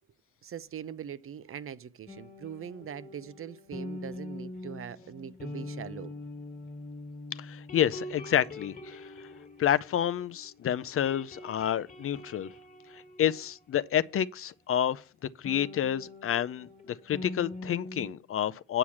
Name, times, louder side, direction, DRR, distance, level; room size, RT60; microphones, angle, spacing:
voice 1, 0.4-6.1, right 8 dB, 45° right, 0.7 m, -42 dB
sound 1, 2.1-10.5 10.8-14.3 15.4-18.1, left 2 dB, 30° left, 1.8 m, -43 dB
voice 2, 7.4-9.3 9.6-12.5 12.9-15.0 15.4-18.8, left 10 dB, 50° left, 0.5 m, -29 dB
8.9 x 4.7 x 7.1 m
cardioid pair, 90°, 30 cm